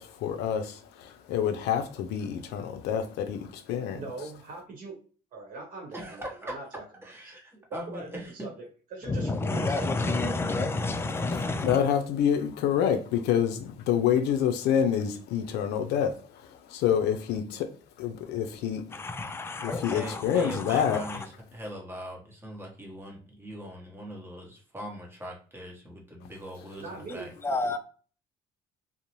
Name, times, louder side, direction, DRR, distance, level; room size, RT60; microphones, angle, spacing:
voice 1, 0.0-4.0 11.6-18.8 19.6-21.0, left 8 dB, 80° left, 0.4 m, -27 dB
voice 2, 3.9-5.0 5.3-6.8 7.2-7.4 7.7-8.6 8.9-10.5 26.8-27.3, right 3 dB, 50° right, 0.9 m, -41 dB
voice 3, 5.9-6.5 7.0-8.3 19.9-21.2 21.5-27.3, equal, 15° right, 0.9 m, -41 dB
voice 4, 9.0-11.8 18.9-21.2 27.4-27.8, left 3 dB, 15° left, 0.3 m, -30 dB
2.6 x 2.0 x 2.9 m
cardioid pair, 110°, 17 cm